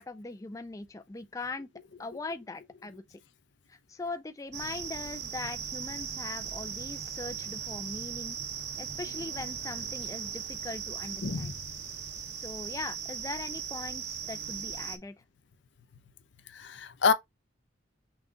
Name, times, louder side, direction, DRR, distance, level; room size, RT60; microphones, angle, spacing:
voice 1, 0.0-1.7 2.0-3.2 3.7-8.4 8.8-11.5 12.3-15.2, left 3 dB, 15° left, 0.3 m, -40 dB
sound 1, 4.5-15.0, right 8 dB, 60° right, 0.7 m, -38 dB
voice 2, 11.2-11.5 16.5-17.1, left 5 dB, 70° left, 0.6 m, -27 dB
5.9 x 2.3 x 3.8 m
head